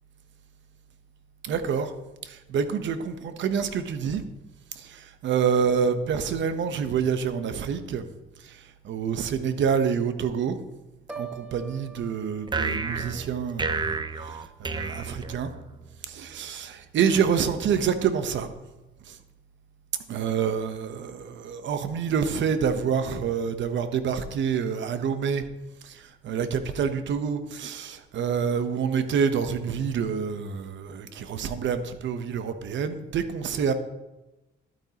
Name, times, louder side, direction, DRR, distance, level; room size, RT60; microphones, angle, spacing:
voice 1, 1.4-1.9 2.2-4.2 4.8-8.0 8.4-10.6 11.2-15.5 16.1-18.5 19.1-19.2 20.1-25.4 25.8-33.7, right 7 dB, 70° right, 10 dB, 0.9 m, -27 dB
Piano, 11.1-15.0 15.4-15.8, right 5 dB, 5° right, 0.9 m, -46 dB
sound 1, 12.5-15.9, right 4 dB, 25° right, 0.6 m, -31 dB
12.0 x 9.2 x 2.9 m, 1.0 s
cardioid pair, 90°, 20 cm